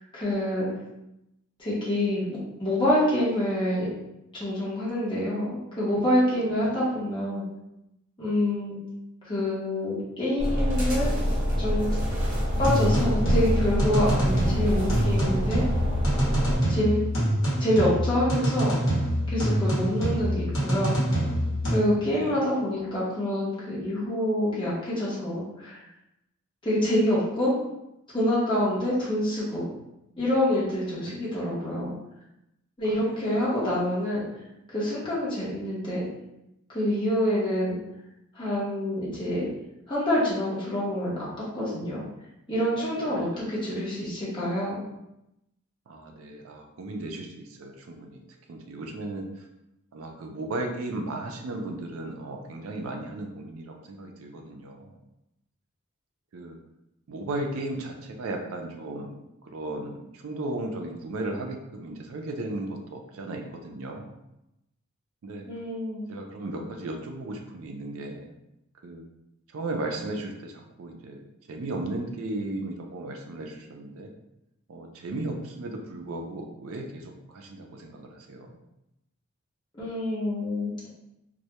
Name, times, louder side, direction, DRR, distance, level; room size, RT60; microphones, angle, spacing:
voice 1, 0.1-0.7 1.6-3.9 4.3-7.5 8.2-8.8 9.3-11.1 11.6-11.9 12.6-15.6 16.7-17.0 17.6-18.8 19.3-21.0 21.7-25.8 26.6-27.5 28.1-29.7 30.2-31.9 32.8-34.3 34.7-36.0 36.7-37.7 38.4-39.5 39.9-41.3 41.5-42.1 42.5-44.8 65.5-66.0 79.7-80.7, left 1 dB, 20° left, -8 dB, 0.7 m, -26 dB
sound 1, 10.4-16.6, equal, 40° right, 0.7 m, -26 dB
sound 2, 12.5-21.8, equal, 65° left, 0.9 m, -26 dB
voice 2, 22.0-22.4 31.0-31.3 32.8-33.3 43.1-43.3 45.9-48.2 48.5-49.3 49.9-54.9 56.3-56.6 57.1-59.2 59.5-64.1 65.2-65.5 66.1-68.3 68.8-69.0 69.5-71.2 71.5-74.1 74.7-77.0 77.3-78.6, right 2 dB, 70° right, 3 dB, 0.4 m, -35 dB
2.2 x 2.1 x 2.8 m, 0.87 s
head